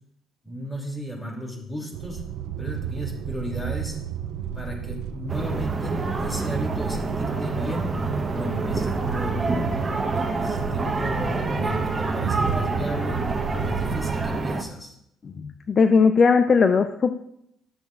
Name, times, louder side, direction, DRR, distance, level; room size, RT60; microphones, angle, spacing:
voice 1, 0.4-2.2 2.6-4.0 4.5-7.9 8.3-9.4 10.1-14.9, equal, 15° left, 0 dB, 2.8 m, -34 dB
sound 1, 1.9-14.4, right 8 dB, 85° right, 0.4 m, -32 dB
sound 2, 5.3-14.6, right 3 dB, 25° right, 1.0 m, -27 dB
voice 2, 15.4-17.1, left 5 dB, 40° left, 9 dB, 0.4 m, -18 dB
12.5 x 6.9 x 2.5 m, 0.76 s
cardioid pair, 100°, 0 cm